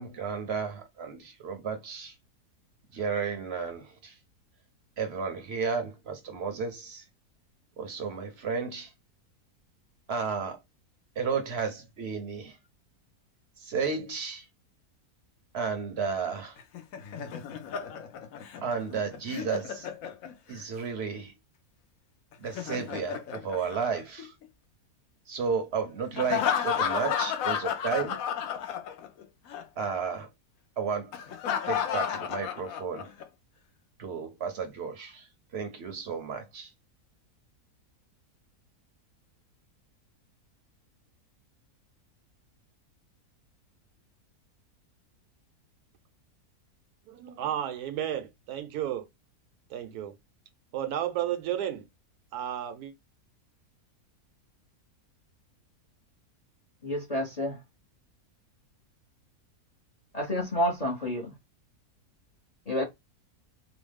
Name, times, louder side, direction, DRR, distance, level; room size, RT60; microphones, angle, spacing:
voice 1, 0.0-2.1 2.9-4.2 5.0-7.0 7.8-8.9 10.1-10.6 11.2-12.6 13.6-14.5 15.5-16.6 18.6-19.9 20.5-21.3 22.4-24.3 25.3-28.2 29.8-30.3 30.8-31.1 31.7-33.1 34.0-35.3 35.5-36.7, right 5 dB, 55° right, 0.7 m, -33 dB
Laughter, 16.6-20.6 22.3-24.5 26.2-29.2 29.5-29.6 31.1-33.2, left 8 dB, 70° left, 0.9 m, -32 dB
voice 2, 47.1-49.1 49.7-50.2 50.7-51.9 52.3-52.9, right 11 dB, 85° right, 1.2 m, -32 dB
voice 3, 56.8-57.6 60.1-61.3 62.7-62.8, equal, 40° left, 0.6 m, -29 dB
3.0 x 2.0 x 3.3 m
omnidirectional pair, 1.6 m